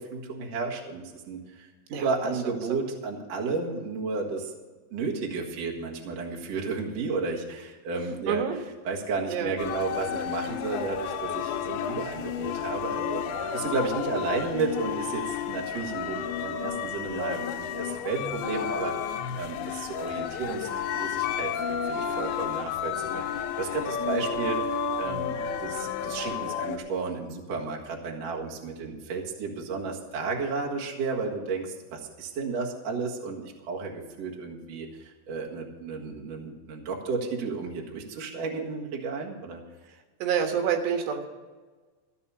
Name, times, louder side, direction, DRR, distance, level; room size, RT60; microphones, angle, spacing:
voice 1, 0.0-4.5 4.9-8.4 8.8-18.9 19.4-24.6 25.0-39.6, right 4 dB, 50° right, -1 dB, 2.3 m, -33 dB
voice 2, 2.5-2.8 8.3-8.6 9.3-9.5 40.2-41.3, right 7 dB, 90° right, 4 dB, 3.6 m, -28 dB
sound 1, 9.6-26.8, left 8 dB, 80° left, 2.5 m, -31 dB
14.0 x 7.0 x 7.1 m, 1.4 s
omnidirectional pair, 4.8 m